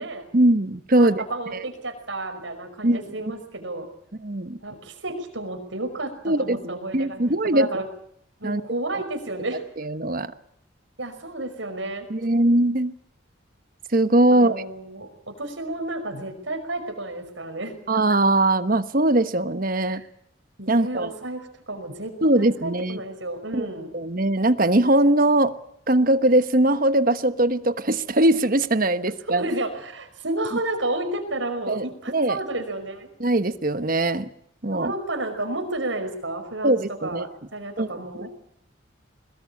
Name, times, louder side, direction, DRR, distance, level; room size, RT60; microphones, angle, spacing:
voice 1, 0.3-1.2 1.5-1.6 2.8-3.0 4.2-4.6 6.2-7.7 8.4-8.6 9.8-10.3 12.1-12.9 13.9-14.6 17.9-20.0 20.7-21.1 22.2-23.0 23.5-23.7 23.9-25.5 25.9-29.4 31.7-32.4 33.2-34.3 34.6-34.9 36.6-37.2 37.8-37.9, right 1 dB, 45° right, 11 dB, 1.2 m, -21 dB
voice 2, 1.0-3.9 4.6-7.9 8.4-9.6 11.0-12.1 14.3-17.7 19.9-20.1 20.6-23.9 29.3-33.1 34.7-38.3, right 2 dB, 75° right, 6 dB, 5.5 m, -31 dB
22.0 x 21.0 x 8.5 m, 0.71 s
head